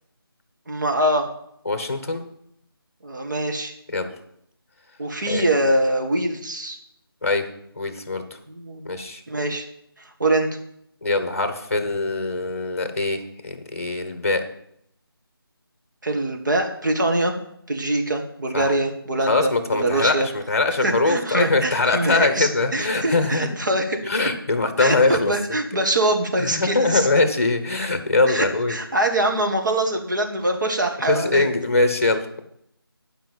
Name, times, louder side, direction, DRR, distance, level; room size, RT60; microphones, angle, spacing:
voice 1, 0.7-1.3 3.0-3.7 5.0-6.8 8.5-8.9 9.3-9.7 10.0-10.6 16.0-17.3 17.7-20.3 20.8-24.0 24.8-27.1 28.3-31.5, right 1 dB, 50° right, 3 dB, 1.8 m, -23 dB
voice 2, 1.6-2.3 3.9-4.1 5.3-5.5 7.2-7.5 7.8-8.2 8.8-9.2 11.0-14.4 18.5-18.7 19.3-23.5 24.0-25.3 26.5-28.8 31.1-32.5, left 3 dB, 35° left, 8 dB, 1.3 m, -22 dB
10.5 x 5.5 x 7.8 m, 0.72 s
figure-of-eight pair, 175°, 13 cm